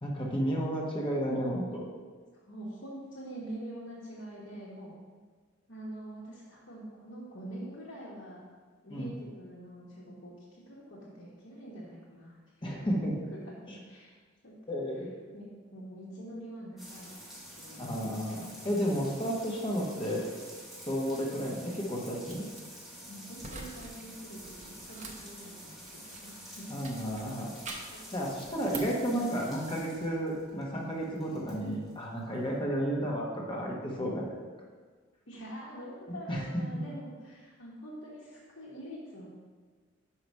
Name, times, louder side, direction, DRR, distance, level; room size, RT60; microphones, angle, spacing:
voice 1, 0.0-1.9 8.9-9.1 12.6-13.1 14.7-15.1 17.8-20.3 20.8-22.4 26.7-27.5 28.1-34.4 36.3-36.6, equal, 25° left, -2 dB, 1.0 m, -32 dB
voice 2, 2.3-4.9 5.7-8.4 8.8-12.4 12.7-13.0 13.3-14.1 14.4-14.8 15.3-17.1 17.6-17.9 23.1-26.7 27.9-28.5 29.1-29.2 35.3-39.3, right 1 dB, 65° left, -8 dB, 1.3 m, -45 dB
sound 1, 16.8-32.6, equal, ahead, 1.3 m, -49 dB
sound 2, 22.3-22.6 23.4-23.9 24.2-26.4 26.8-28.0 28.4-29.0, right 3 dB, 35° right, 0.8 m, -44 dB
5.7 x 4.7 x 5.3 m, 1.5 s
head